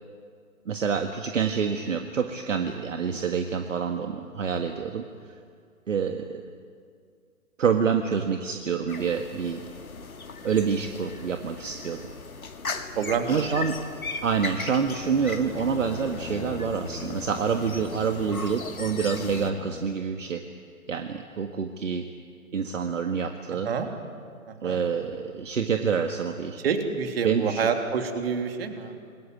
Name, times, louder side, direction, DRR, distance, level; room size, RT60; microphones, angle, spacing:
voice 1, 0.7-5.1 5.9-6.4 7.6-9.6 10.4-12.0 13.3-13.8 14.2-20.4 20.9-22.1 22.5-23.7 24.6-26.6 27.2-27.7, right 6 dB, 60° right, 5 dB, 1.8 m, -27 dB
sound 1, 8.9-19.5, left 4 dB, 75° left, 2.3 m, -38 dB
voice 2, 13.0-13.6 23.6-23.9 24.5-24.8 26.6-29.0, right 6 dB, 45° right, 5 dB, 3.1 m, -28 dB
sound 2, 14.7-20.0, left 6 dB, 60° left, 1.5 m, -40 dB
27.0 x 22.0 x 9.4 m, 2.2 s
figure-of-eight pair, 140°, 43 cm